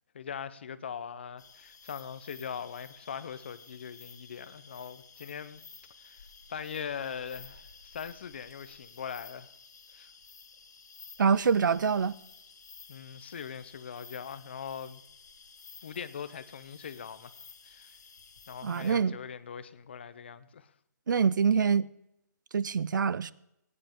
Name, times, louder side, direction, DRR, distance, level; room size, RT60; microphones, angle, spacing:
voice 1, 0.1-5.6 6.0-6.2 6.5-9.5 9.9-10.1 12.9-15.0 15.8-17.3 17.6-18.0 18.5-20.7, left 7 dB, 35° left, 0.5 m, -41 dB
sound 1, 1.4-18.9, left 5 dB, 65° left, 1.8 m, -53 dB
voice 2, 11.2-12.1 18.6-19.2 21.1-21.8 22.5-23.3, right 6 dB, 80° right, 0.5 m, -25 dB
19.0 x 9.6 x 3.6 m
hypercardioid pair, 175°, 10 cm